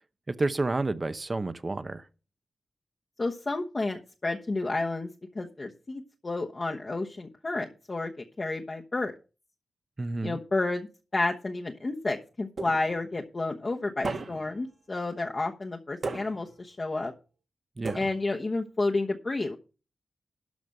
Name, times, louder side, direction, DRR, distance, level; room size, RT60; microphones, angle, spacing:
voice 1, 0.3-2.1 10.0-10.4 17.8-18.1, right 2 dB, 30° right, 0.8 m, -30 dB
voice 2, 3.2-5.1 5.3-9.1 10.2-17.1 17.9-19.6, left 2 dB, 35° left, 1.1 m, -31 dB
sound 1, 12.6-13.2 14.0-14.7 16.0-16.7 17.8-18.5, right 3 dB, 55° right, 1.6 m, -36 dB
12.5 x 5.2 x 6.4 m
wide cardioid pair, 105°, 0 cm